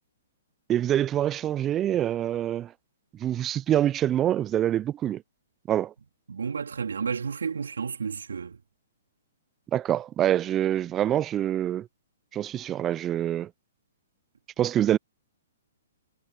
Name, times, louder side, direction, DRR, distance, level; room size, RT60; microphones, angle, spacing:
voice 1, 0.7-2.7 3.2-5.2 5.7-5.9 9.7-11.9 12.3-13.5 14.6-15.0, right 11 dB, 20° right, 0.4 m, -25 dB
voice 2, 6.3-8.6, right 6 dB, 70° right, 3.7 m, -31 dB
figure-of-eight pair, 120°, 0 cm